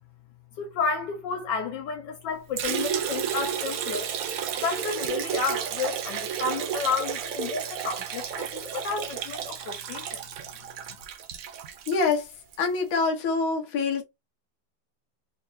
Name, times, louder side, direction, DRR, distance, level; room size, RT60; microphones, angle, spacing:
voice 1, 0.6-4.1 4.6-10.2, left 5 dB, 75° left, 1.3 m, -31 dB
Liquid, 2.6-12.7, right 9 dB, 75° right, 0.7 m, -32 dB
voice 2, 11.9-12.3 12.6-14.0, left 4 dB, 55° left, 1.1 m, -25 dB
3.7 x 2.5 x 2.5 m
omnidirectional pair, 2.1 m